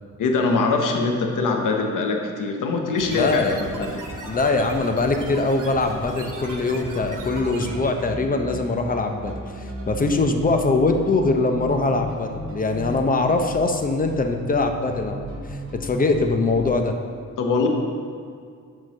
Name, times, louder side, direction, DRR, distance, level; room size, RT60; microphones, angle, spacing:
voice 1, 0.2-4.0 17.4-17.7, left 3 dB, 80° left, 2 dB, 0.9 m, -23 dB
sound 1, 3.0-8.1, right 2 dB, 75° right, 1.2 m, -36 dB
voice 2, 3.1-3.9 4.2-16.9, left 3 dB, 30° left, 5 dB, 0.5 m, -22 dB
sound 2, 7.1-16.7, equal, 45° right, 1.9 m, -35 dB
7.7 x 3.8 x 6.5 m, 2.2 s
wide cardioid pair, 145°, 31 cm